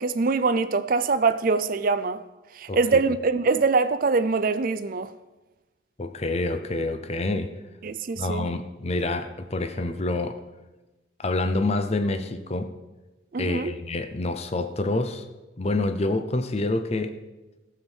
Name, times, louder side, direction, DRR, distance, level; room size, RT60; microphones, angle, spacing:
voice 1, 0.0-2.2 2.5-5.1 7.8-8.5 13.3-13.7, right 4 dB, 45° right, 0.4 m, -23 dB
voice 2, 6.0-7.5 8.2-10.4 11.2-12.7 13.4-15.2 15.6-17.1, left 2 dB, 35° left, 0.6 m, -27 dB
15.0 x 7.2 x 4.5 m
head